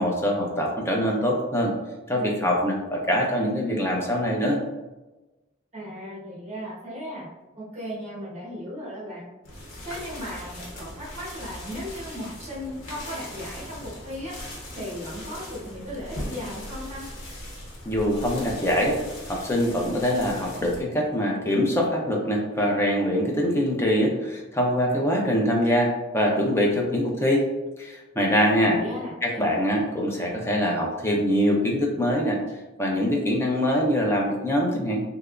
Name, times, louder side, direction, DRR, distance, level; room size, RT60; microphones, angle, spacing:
voice 1, 0.0-1.7 2.1-4.6 17.9-19.0 19.3-27.5 27.8-28.8 29.2-32.4 32.8-35.0, equal, 10° left, -1 dB, 0.5 m, -23 dB
voice 2, 5.7-7.3 7.5-9.3 9.8-14.4 14.7-17.0 28.6-29.5, equal, 35° right, -7 dB, 1.1 m, -36 dB
sound 1, 9.4-20.8, left 1 dB, 80° left, 1.0 m, -39 dB
3.3 x 2.8 x 2.4 m, 1.1 s
head